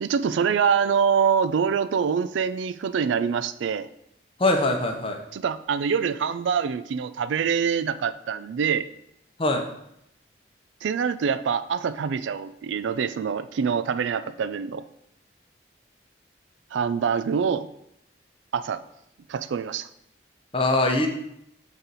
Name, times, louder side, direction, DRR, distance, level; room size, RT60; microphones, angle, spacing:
voice 1, 0.0-3.9 5.3-8.9 10.8-14.8 16.7-17.7 18.5-18.8 19.3-19.9, right 6 dB, 80° right, 13 dB, 0.3 m, -25 dB
voice 2, 4.4-5.2 9.4-9.6 20.5-21.1, left 2 dB, 30° left, 4 dB, 0.7 m, -22 dB
7.8 x 4.1 x 4.0 m, 0.78 s
head